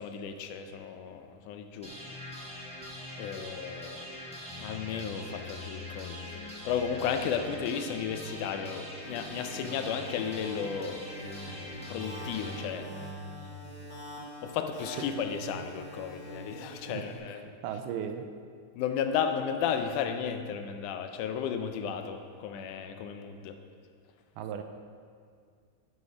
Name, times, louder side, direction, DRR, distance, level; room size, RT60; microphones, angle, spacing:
voice 1, 0.0-1.9 3.2-4.1 4.6-13.1 14.4-17.5 18.7-23.6, left 7 dB, 80° left, 7 dB, 2.1 m, -34 dB
sound 1, 1.8-13.8, left 1 dB, 5° left, 0.5 m, -42 dB
sound 2, 9.0-17.2, equal, 35° left, 1.9 m, -46 dB
voice 2, 17.6-18.3 24.4-24.6, right 8 dB, 85° right, 7 dB, 2.2 m, -35 dB
11.5 x 5.1 x 5.1 m, 2.2 s
omnidirectional pair, 3.7 m